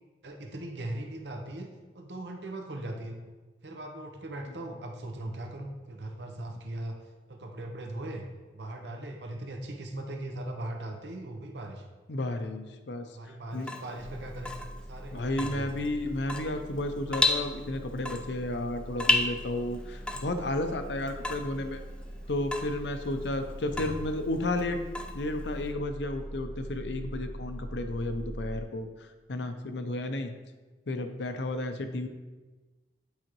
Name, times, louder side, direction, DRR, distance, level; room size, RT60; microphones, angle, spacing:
voice 1, 0.2-1.7 1.9-3.2 3.6-7.0 7.3-8.3 8.5-11.9 13.1-14.5 14.9-15.9 23.7-23.9, right 1 dB, 75° right, 3 dB, 0.9 m, -39 dB
voice 2, 12.1-13.7 15.1-21.8 22.3-24.8 25.1-30.3 30.9-32.1, left 2 dB, 75° left, 7 dB, 0.7 m, -32 dB
Water tap faucet / Drip, 13.5-25.7, left 2 dB, 5° left, 0.3 m, -34 dB
sound 1, 14.0-28.6, right 1 dB, 45° right, 1.1 m, -42 dB
10.5 x 4.9 x 3.1 m, 1.3 s
head